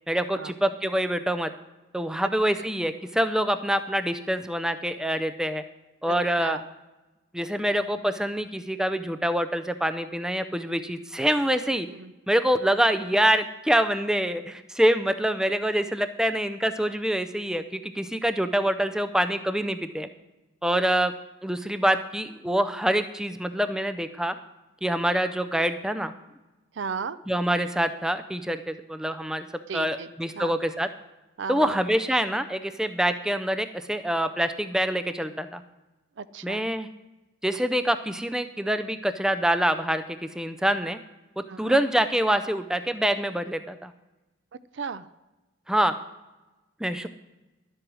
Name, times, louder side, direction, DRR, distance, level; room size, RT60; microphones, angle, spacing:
voice 1, 0.1-1.5 1.9-5.6 6.0-6.6 7.3-11.9 12.3-20.1 20.6-21.1 21.4-24.3 24.8-26.1 27.3-29.5 29.7-30.9 31.5-35.6 36.4-36.9 37.4-41.0 41.4-43.9 45.7-45.9 46.8-47.1, right 1 dB, 5° right, 9 dB, 0.4 m, -25 dB
voice 2, 6.0-6.6 11.9-12.1 26.7-27.2 29.7-30.1 30.4-30.5 31.4-31.8 36.2-36.6 41.5-41.8 44.7-45.1, right 5 dB, 65° right, 15 dB, 0.4 m, -35 dB
11.5 x 7.8 x 6.2 m, 1.1 s
head